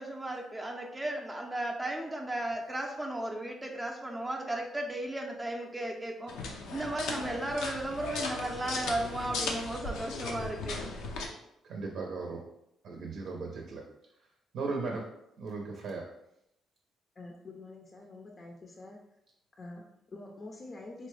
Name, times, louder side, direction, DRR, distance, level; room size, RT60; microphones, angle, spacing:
voice 1, 0.0-6.3 6.7-10.8, right 1 dB, 15° right, 0 dB, 0.5 m, -35 dB
sound 1, 6.3-11.3, left 3 dB, 90° left, 0.5 m, -37 dB
voice 2, 11.7-12.4 12.8-13.8 14.5-15.0 15.4-16.0, right 3 dB, 70° right, 0 dB, 0.6 m, -36 dB
voice 3, 17.2-19.0 19.6-21.1, left 2 dB, 40° left, 0 dB, 0.5 m, -46 dB
4.0 x 2.2 x 3.1 m, 0.79 s
cardioid pair, 90°, 0 cm